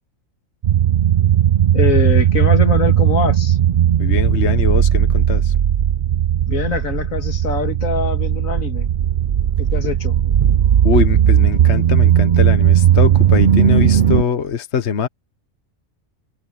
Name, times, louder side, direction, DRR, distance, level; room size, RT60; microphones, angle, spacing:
sound 1, 0.6-14.2, right 10 dB, 50° right, 0.6 m, -16 dB
voice 1, 1.7-3.6 6.5-8.9 9.6-10.2, left 6 dB, 80° left, 2.1 m, -23 dB
voice 2, 4.0-5.5 10.8-15.1, left 7 dB, 55° left, 1.3 m, -22 dB
omnidirectional pair, 1.4 m